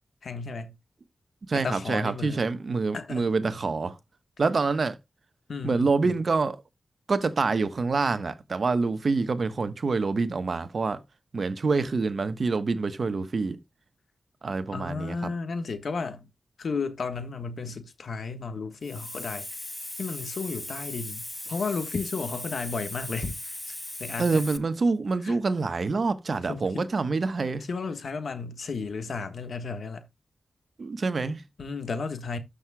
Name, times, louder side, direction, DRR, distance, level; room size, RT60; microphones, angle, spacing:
voice 1, 0.2-0.7 1.5-2.5 2.9-3.3 5.5-6.1 14.7-16.3 16.6-19.5 20.0-24.4 25.2-25.4 26.5-26.8 27.7-30.1 31.6-32.4, left 4 dB, 75° left, 1.4 m, -33 dB
voice 2, 1.5-4.0 4.4-5.0 5.6-6.6 7.1-11.0 11.3-13.6 14.4-15.3 24.2-27.7 30.8-31.4, right 4 dB, 60° right, 1.1 m, -26 dB
Hiss, 18.8-24.6, left 1 dB, 20° left, 0.8 m, -38 dB
12.5 x 6.5 x 2.3 m
wide cardioid pair, 75°, 0 cm